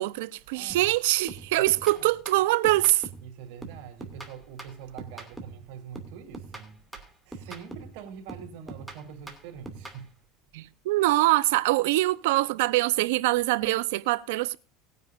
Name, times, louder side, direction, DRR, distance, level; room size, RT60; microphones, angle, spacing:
voice 1, 0.0-3.1 10.5-14.6, right 18 dB, 85° right, 0.8 m, -24 dB
voice 2, 0.5-0.9 1.6-1.7 1.9-2.0 3.2-6.8 7.3-10.1, right 8 dB, 70° right, 3.7 m, -44 dB
sound 1, 0.7-1.0 1.3-3.3 3.6-5.6 5.9-8.0 8.3-10.0, right 3 dB, 5° right, 2.5 m, -43 dB
20.0 x 9.4 x 2.6 m
cardioid pair, 145°, 0 cm